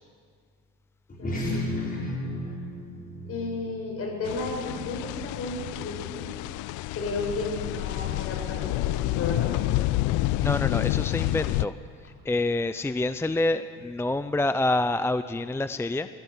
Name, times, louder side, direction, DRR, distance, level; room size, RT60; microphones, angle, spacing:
sound 1, 1.1-5.9, left 1 dB, 30° left, 6.3 m, -34 dB
voice 1, 3.3-6.3 6.9-10.0, left 2 dB, 45° left, 1 dB, 7.5 m, -33 dB
sound 2, 4.2-11.7, left 17 dB, 70° left, 0.6 m, -28 dB
voice 2, 10.4-11.8 12.0-16.1, left 2 dB, 10° left, 12 dB, 0.6 m, -27 dB
25.5 x 16.5 x 8.3 m, 2.2 s
supercardioid pair, 100°, 31 cm